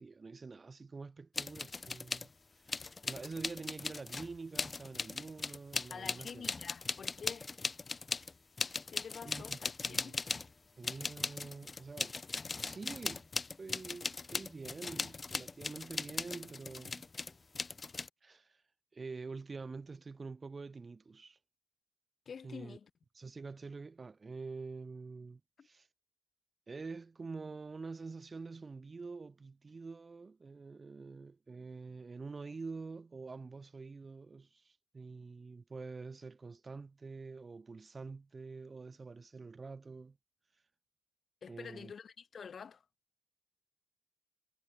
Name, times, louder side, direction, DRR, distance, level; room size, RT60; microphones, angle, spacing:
voice 1, 0.0-2.3 2.6-6.5 9.2-9.6 9.9-10.1 10.8-12.2 12.6-13.3 13.6-17.1 18.2-18.6 18.9-21.4 22.4-22.8 23.1-25.9 26.7-40.2 41.5-41.9, right 4 dB, 30° right, 0.6 m, -46 dB
sound 1, 1.4-2.3 2.7-10.5 10.8-18.1, left 4 dB, 30° left, 1.0 m, -39 dB
voice 2, 5.9-7.5 8.9-10.2 22.3-22.9 25.6-25.7 41.4-42.8, left 6 dB, 45° left, 2.7 m, -48 dB
cardioid pair, 105°, 0 cm